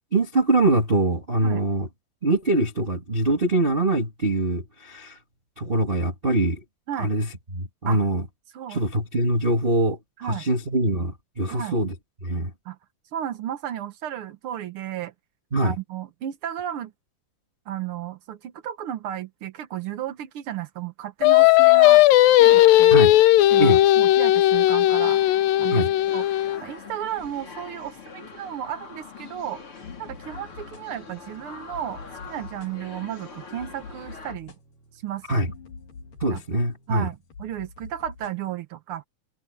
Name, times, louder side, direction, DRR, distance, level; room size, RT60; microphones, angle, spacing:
voice 1, 0.1-1.9 2.2-5.2 5.6-6.6 7.0-8.2 8.7-11.9 12.2-12.5 15.5-15.7 22.9-23.1 23.6-23.8 25.7-25.9 35.3-35.5 36.2-37.1, right 2 dB, 25° right, 1.3 m, -23 dB
voice 2, 13.1-15.1 15.6-16.9 17.7-22.0 22.4-23.0 23.5-25.2 25.6-25.8 26.1-29.6 30.0-34.5 34.9-35.5 36.3-36.4 36.9-39.0, right 11 dB, 80° right, 1.2 m, -33 dB
Singing, 21.2-26.6, left 15 dB, 90° left, 2.5 m, -16 dB
sound 1, 23.4-34.3, left 5 dB, 40° left, 4.7 m, -44 dB
sound 2, 29.8-38.4, left 4 dB, 75° left, 5.3 m, -46 dB
omnidirectional pair, 3.9 m